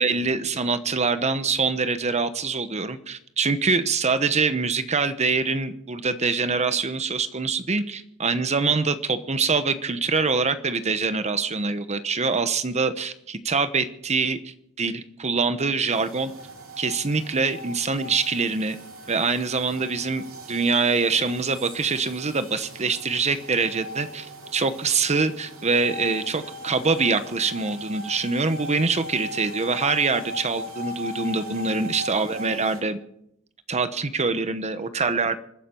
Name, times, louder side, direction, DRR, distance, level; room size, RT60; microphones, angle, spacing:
voice 1, 0.0-16.3 16.8-18.8 19.1-24.3 24.5-33.0 33.7-35.4, right 4 dB, 30° right, 11 dB, 1.0 m, -24 dB
sound 1, 15.9-32.8, left 1 dB, 65° right, 3.2 m, -39 dB
27.5 x 10.0 x 4.5 m, 0.76 s
head